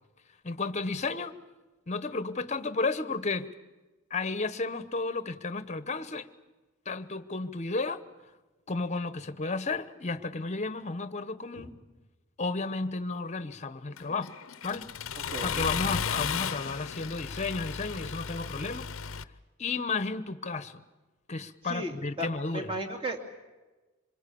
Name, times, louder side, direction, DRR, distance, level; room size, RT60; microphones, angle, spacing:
voice 1, 0.4-1.3 1.9-3.5 4.1-6.3 6.8-8.0 8.7-11.7 12.4-14.3 14.6-14.9 15.4-18.9 19.6-20.8 21.3-22.7, left 3 dB, 35° left, 13 dB, 1.0 m, -33 dB
Accelerating revving vroom, 14.0-19.2, left 7 dB, 70° left, 0.7 m, -34 dB
voice 2, 21.6-23.2, right 1 dB, 25° right, 3 dB, 2.6 m, -35 dB
26.0 x 22.5 x 8.6 m, 1.2 s
head